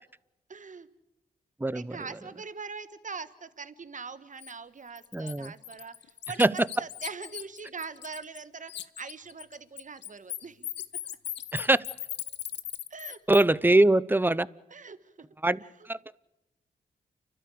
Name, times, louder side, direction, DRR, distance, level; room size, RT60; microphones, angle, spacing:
voice 1, 0.5-0.9 1.7-10.7 12.9-13.2 14.7-15.3 15.6-15.7, right 5 dB, 45° right, 13 dB, 1.5 m, -42 dB
voice 2, 1.6-2.0 5.1-5.5 6.4-6.5 11.5-11.8 13.3-14.5 15.4-15.6 15.9-16.2, right 2 dB, 10° right, 20 dB, 0.7 m, -22 dB
Bird, 4.4-4.5 5.0-8.4 8.7-13.4, left 11 dB, 85° left, 0.7 m, -38 dB
30.0 x 12.5 x 8.5 m, 0.98 s
supercardioid pair, 45°, 18 cm